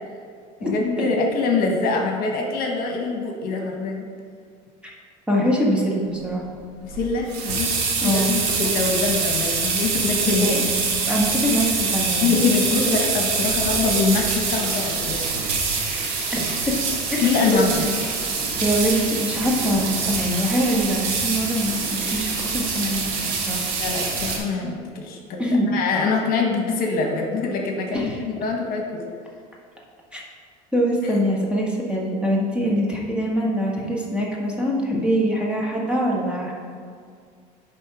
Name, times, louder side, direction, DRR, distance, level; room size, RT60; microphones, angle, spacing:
voice 1, 0.6-4.1 6.8-10.5 12.2-15.2 17.2-17.9 23.8-25.4 25.7-29.1 32.6-32.8, left 4 dB, 55° left, 1 dB, 1.2 m, -24 dB
voice 2, 5.3-6.4 8.0-8.3 10.3-10.7 11.1-12.4 12.7-12.9 16.3-16.7 17.1-17.7 18.6-23.6 25.4-25.7 27.9-28.2 30.1-30.2 30.7-36.5, equal, 5° right, -4 dB, 1.6 m, -23 dB
sound 1, 6.9-24.4, right 4 dB, 85° right, 1.5 m, -25 dB
10.5 x 3.6 x 4.9 m, 2.2 s
supercardioid pair, 105°, 18 cm